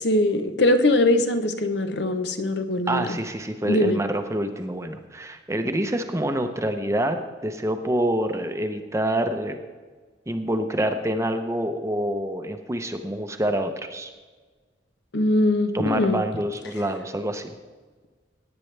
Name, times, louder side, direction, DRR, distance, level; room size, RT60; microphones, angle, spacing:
voice 1, 0.0-3.2 3.7-4.0 15.1-16.2, left 1 dB, 65° left, 8 dB, 0.8 m, -21 dB
voice 2, 2.9-9.6 10.3-14.1 15.7-17.5, right 1 dB, 15° right, 7 dB, 0.8 m, -26 dB
17.5 x 9.1 x 3.3 m, 1.4 s
head